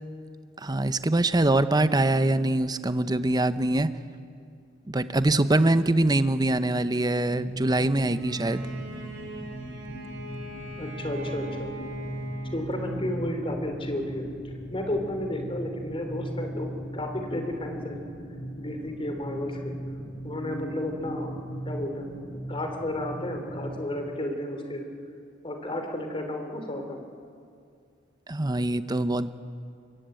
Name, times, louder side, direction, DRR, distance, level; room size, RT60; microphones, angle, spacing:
voice 1, 0.6-3.9 4.9-8.7 28.3-29.3, right 2 dB, 20° right, 12 dB, 0.8 m, -23 dB
sound 1, 7.3-23.8, right 1 dB, 55° left, 2.7 m, -38 dB
Bowed string instrument, 8.1-13.2, right 1 dB, 80° right, 5.6 m, -42 dB
voice 2, 10.8-11.7 12.5-18.0 18.6-19.7 20.2-21.3 21.6-22.2 22.5-24.9 25.4-27.0, left 1 dB, 30° left, 5 dB, 3.1 m, -32 dB
24.0 x 22.5 x 9.1 m, 2.3 s
head